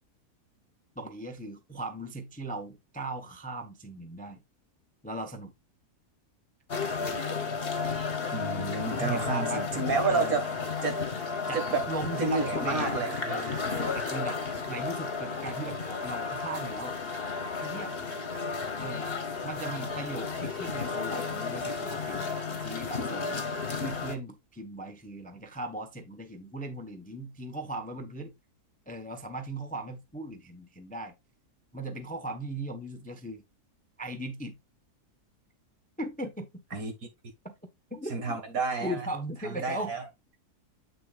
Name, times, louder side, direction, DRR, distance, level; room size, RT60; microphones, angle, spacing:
voice 1, 1.0-4.4 5.0-5.5 8.8-9.7 10.1-10.4 11.5-13.0 13.3-14.4 14.7-17.0 17.6-17.9 18.8-19.1 19.4-23.4 23.7-28.3 28.9-31.1 31.7-33.4 34.0-34.6 36.0-36.8 37.4-37.5 37.9-38.4 38.8-39.9, right 1 dB, 5° left, 0.8 m, -38 dB
sound 1, 6.7-24.1, left 4 dB, 40° left, 1.3 m, -33 dB
voice 2, 8.3-10.5 10.8-11.0 11.5-11.9 12.2-13.3 36.7-36.9 38.1-39.1 39.4-40.0, right 4 dB, 60° right, 2.1 m, -30 dB
sound 2, 12.4-17.9, right 2 dB, 40° right, 1.5 m, -46 dB
8.1 x 6.6 x 2.4 m
omnidirectional pair, 1.7 m